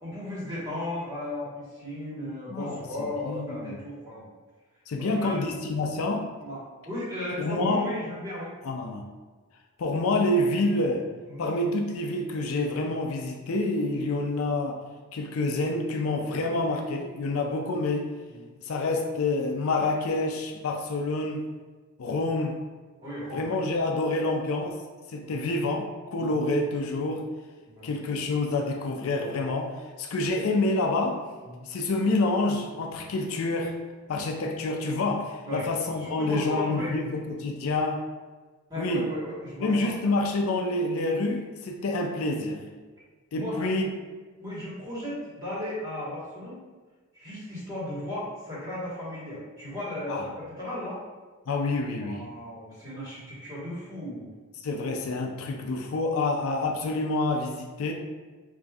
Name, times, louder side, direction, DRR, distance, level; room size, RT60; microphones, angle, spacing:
voice 1, 0.0-4.3 5.0-5.4 6.4-6.6 6.9-8.5 11.3-11.4 14.0-14.1 18.3-18.5 22.3-22.4 23.0-23.5 25.2-25.5 27.7-27.9 31.4-31.6 35.4-35.6 36.0-37.0 38.7-39.9 43.3-43.7 44.4-46.6 47.1-51.0 52.0-54.3, left 1 dB, 15° right, -9 dB, 1.4 m, -35 dB
voice 2, 2.5-3.8 4.9-6.2 7.4-7.9 8.6-9.0 9.8-11.1 11.4-14.7 15.1-18.1 18.6-21.4 22.0-22.6 23.3-24.8 25.1-27.2 27.8-29.7 30.0-31.2 31.7-33.7 34.1-38.0 38.8-39.1 39.6-42.6 43.3-43.9 50.1-50.3 51.5-52.2 54.6-57.9, left 2 dB, 65° left, 2 dB, 0.4 m, -27 dB
4.8 x 2.6 x 2.3 m, 1.4 s
head